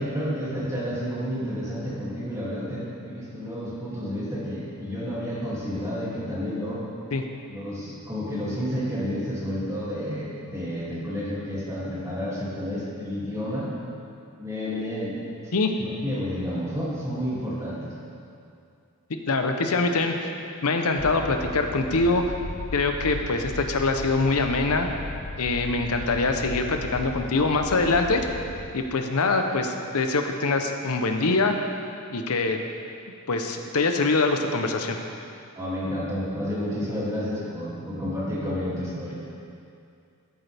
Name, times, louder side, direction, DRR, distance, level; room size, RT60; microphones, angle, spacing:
voice 1, 0.0-6.8 7.5-13.7 14.4-15.1 15.8-17.9 35.5-39.1, equal, 15° right, -8 dB, 2.6 m, -30 dB
voice 2, 19.1-20.3 20.6-22.2 22.7-24.9 25.4-28.3 28.7-31.6 32.1-32.6 33.3-35.0, left 3 dB, 80° left, 5 dB, 0.8 m, -24 dB
sound 1, 21.0-28.7, left 3 dB, 50° left, 0.5 m, -37 dB
13.0 x 8.1 x 3.5 m, 2.5 s
head